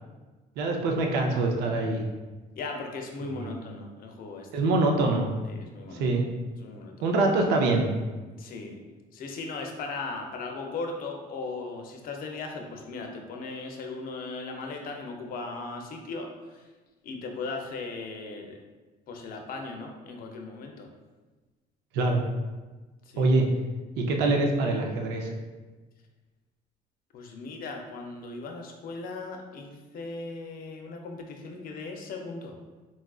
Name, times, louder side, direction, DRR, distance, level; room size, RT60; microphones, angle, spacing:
voice 1, 0.6-2.1 3.2-3.5 4.5-5.3 5.9-6.2 7.0-7.9 21.9-22.2 23.2-23.4 24.0-25.3, right 2 dB, 90° right, 2 dB, 0.5 m, -24 dB
voice 2, 2.6-4.6 5.5-6.1 6.6-6.9 8.4-8.8 9.1-16.6 17.0-18.6 19.1-20.9 23.1-23.3 27.1-32.6, left 3 dB, 60° left, 2 dB, 0.5 m, -38 dB
4.0 x 2.4 x 2.3 m, 1.3 s
cardioid pair, 110°, 17 cm